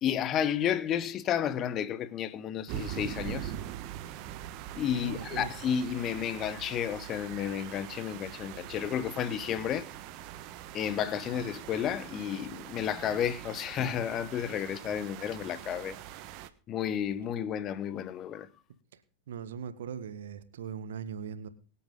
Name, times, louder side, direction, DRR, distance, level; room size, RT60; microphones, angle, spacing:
voice 1, 0.0-3.5 4.7-9.9 10.7-16.0 16.7-18.5, left 9 dB, 30° left, 1.2 m, -32 dB
sound 1, 2.7-16.5, right 12 dB, 40° right, 1.4 m, -43 dB
voice 2, 5.0-5.5 18.9-19.0 19.3-21.5, right 7 dB, 60° right, 1.7 m, -40 dB
23.5 x 8.7 x 3.8 m
figure-of-eight pair, 90°, 0 cm